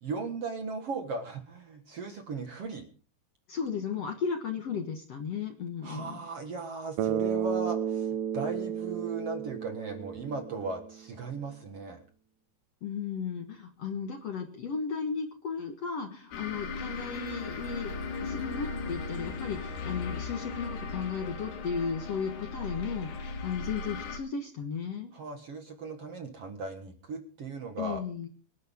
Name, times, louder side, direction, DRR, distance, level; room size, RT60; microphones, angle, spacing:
voice 1, 0.0-2.8 5.8-12.0 25.1-28.0, right 4 dB, 50° right, 5 dB, 2.1 m, -37 dB
voice 2, 3.5-6.2 12.8-17.9 18.2-25.1 27.8-28.3, left 6 dB, 55° left, 4 dB, 2.0 m, -35 dB
Bass guitar, 7.0-11.0, right 8 dB, 75° right, 2.2 m, -32 dB
sound 1, 16.3-24.2, left 4 dB, 90° left, 3.9 m, -37 dB
25.0 x 11.0 x 3.7 m, 0.40 s
omnidirectional pair, 4.3 m